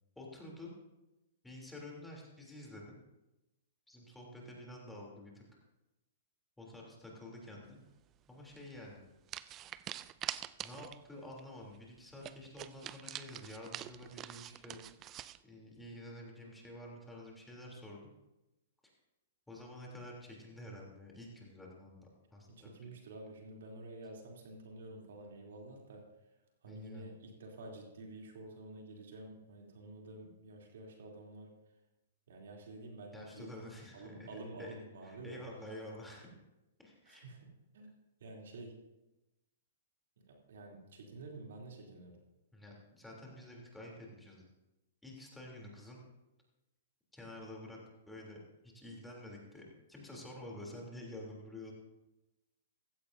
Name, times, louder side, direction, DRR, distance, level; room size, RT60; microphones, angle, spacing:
voice 1, 0.1-0.7 1.4-3.0 3.9-5.4 6.6-7.8 8.3-9.0 10.6-14.8 15.4-18.1 19.5-22.9 26.6-27.1 33.1-34.8 35.0-36.3 36.8-37.3 42.5-44.4 45.0-46.0 47.1-47.8 48.1-48.4 48.6-51.7, left 1 dB, 5° left, -3 dB, 3.2 m, -49 dB
sound 1, 8.5-8.7 9.3-11.1 11.4-11.5 11.7-11.8 12.2-15.4, right 12 dB, 30° right, 0.4 m, -45 dB
voice 2, 22.5-26.0 26.6-31.5 32.3-33.5 33.9-35.4 37.0-37.5 37.7-37.9 38.2-38.8 40.2-42.2, right 2 dB, 70° right, 0 dB, 3.1 m, -49 dB
15.5 x 15.5 x 2.7 m, 0.99 s
hypercardioid pair, 125°, 0 cm